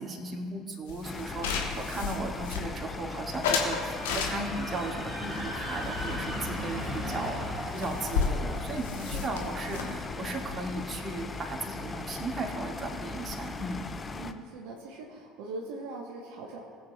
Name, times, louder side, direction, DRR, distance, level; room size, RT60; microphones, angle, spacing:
voice 1, 0.0-13.8, right 2 dB, 30° right, 0 dB, 1.9 m, -36 dB
sound 1, 0.9-3.0 3.4-4.7 5.3-6.6 6.8-7.0 7.3-7.4 7.6-11.4, left 5 dB, 75° left, 1.2 m, -33 dB
sound 2, 1.0-14.3, left 4 dB, 25° left, 0.6 m, -39 dB
sound 3, 2.3-11.7, equal, 5° right, 2.3 m, -40 dB
voice 2, 7.0-7.3 9.0-10.0 14.1-16.6, right 3 dB, 65° right, -2 dB, 1.1 m, -42 dB
20.0 x 8.0 x 2.3 m, 2.1 s
figure-of-eight pair, 60°, 0 cm